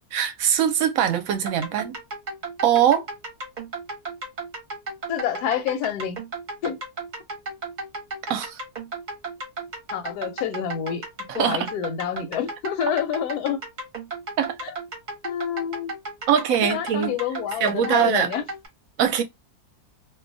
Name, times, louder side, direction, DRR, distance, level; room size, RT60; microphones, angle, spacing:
voice 1, 0.1-2.0 2.6-3.0 8.3-8.6 11.4-11.7 14.4-14.5 16.3-17.2 17.6-18.3 19.0-19.2, right 9 dB, 70° right, 0.9 m, -22 dB
sound 1, 1.3-18.7, right 3 dB, 35° right, 0.8 m, -35 dB
voice 2, 5.1-6.2 6.6-6.8 9.9-11.0 11.3-13.6 14.6-14.8 15.2-15.9 16.6-18.5, left 9 dB, 85° left, 1.1 m, -28 dB
2.6 x 2.2 x 2.6 m
omnidirectional pair, 1.6 m